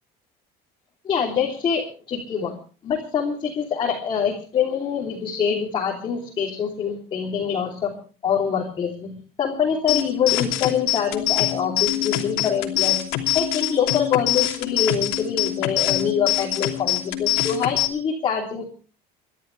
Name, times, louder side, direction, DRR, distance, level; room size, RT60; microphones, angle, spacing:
voice 1, 1.0-2.6 2.8-8.0 8.2-13.0 13.3-18.7, left 7 dB, 30° left, -1 dB, 3.3 m, -25 dB
sound 1, 9.9-17.9, left 15 dB, 80° left, 3.0 m, -24 dB
30.0 x 12.0 x 3.4 m, 0.39 s
cardioid pair, 170°, 17 cm